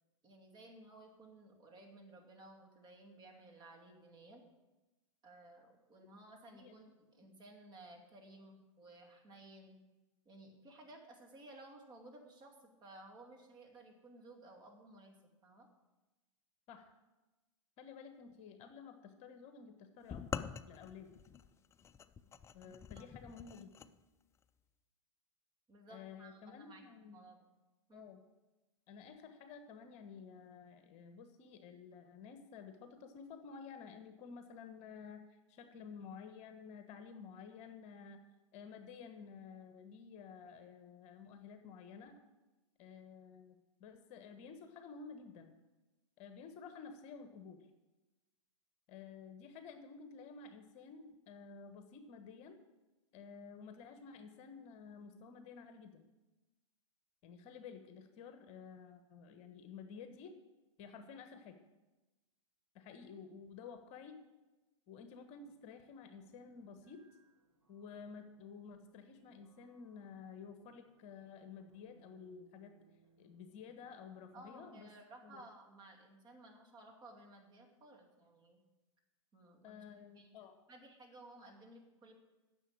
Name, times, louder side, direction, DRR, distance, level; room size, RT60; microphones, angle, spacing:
voice 1, 0.2-4.4 5.2-9.8 10.2-15.2 15.4-15.7 22.6-23.0 25.7-27.4 27.9-28.1 74.3-78.6 79.3-79.7 80.1-80.3 80.7-82.1, right 2 dB, 25° right, 1 dB, 2.6 m, -57 dB
voice 2, 17.8-20.3 20.7-21.1 22.5-23.9 25.9-27.2 27.9-28.2 28.9-35.2 35.5-38.2 38.5-42.1 42.8-45.5 46.2-47.6 48.9-52.6 53.1-56.0 57.2-60.4 60.8-61.6 62.7-64.2 64.9-67.0 67.7-72.8 73.2-74.9 75.2-75.4 79.6-80.6, left 6 dB, 40° left, 7 dB, 1.2 m, -52 dB
sound 1, 20.1-23.9, left 7 dB, 15° left, 0.4 m, -45 dB
sound 2, 65.2-74.8, right 3 dB, 85° right, 3.4 m, -72 dB
10.0 x 7.1 x 8.5 m, 1.1 s
hypercardioid pair, 110°, 17 cm